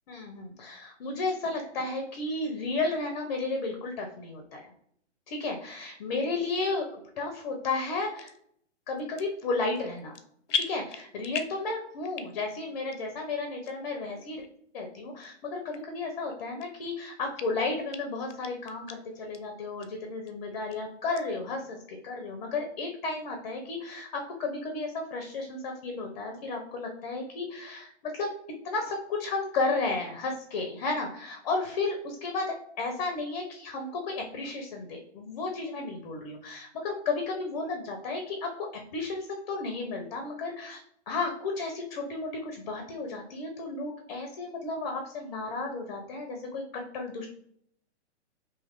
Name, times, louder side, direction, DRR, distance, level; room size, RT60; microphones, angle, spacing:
voice 1, 0.1-4.7 5.3-6.8 7.2-8.3 8.9-10.2 10.5-14.4 14.7-28.3 28.6-47.3, left 3 dB, 40° left, 3 dB, 0.5 m, -33 dB
sound 1, 8.2-8.4 9.0-9.5 9.7-10.2 10.5-11.7 12.0-12.5 12.9-13.0 13.6-13.7 14.4-14.5 15.2-15.3 15.7-15.8 16.3-16.9 17.3-17.4 17.9-18.0 18.3-18.9 19.3-19.4 19.8-19.9 20.3-20.8 21.1-21.2, left 6 dB, 85° left, 0.5 m, -35 dB
2.7 x 2.4 x 3.4 m, 0.67 s
hypercardioid pair, 140°, 35 cm